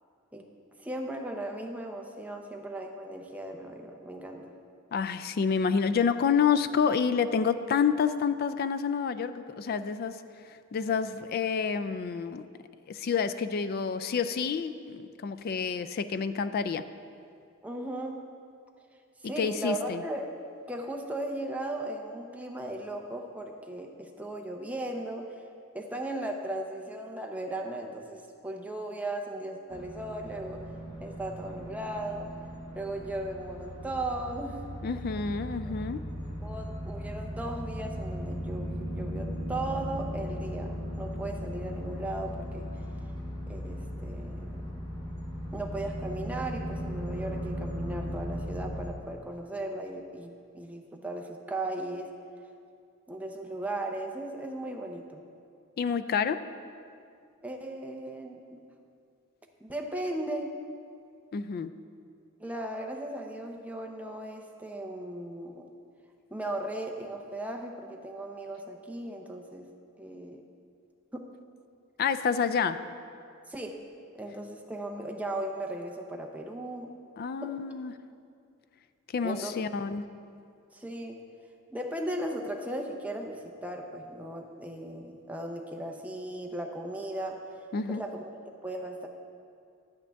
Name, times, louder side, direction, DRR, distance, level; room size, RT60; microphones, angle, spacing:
voice 1, 0.8-4.5 17.6-18.2 19.2-20.3 20.7-25.2 25.7-30.6 31.0-32.3 32.7-34.6 36.4-42.7 43.5-44.7 45.5-52.1 53.1-55.2 57.4-58.6 59.6-60.5 62.4-65.7 66.3-69.7 70.0-70.4 71.1-71.3 73.5-73.8 74.1-76.9 77.4-77.5 79.2-79.7 80.7-81.2 81.7-87.4 87.9-89.1, right 1 dB, 5° right, 2 dB, 0.6 m, -37 dB
voice 2, 4.9-10.2 10.5-12.5 12.9-16.9 19.2-20.0 34.8-36.1 55.8-56.4 61.3-61.7 72.0-72.8 77.2-77.9 79.1-80.0 87.7-88.0, left 6 dB, 45° left, 12 dB, 0.3 m, -28 dB
sound 1, 29.7-48.9, equal, 20° left, 1.1 m, -37 dB
10.0 x 8.6 x 3.4 m, 2.4 s
head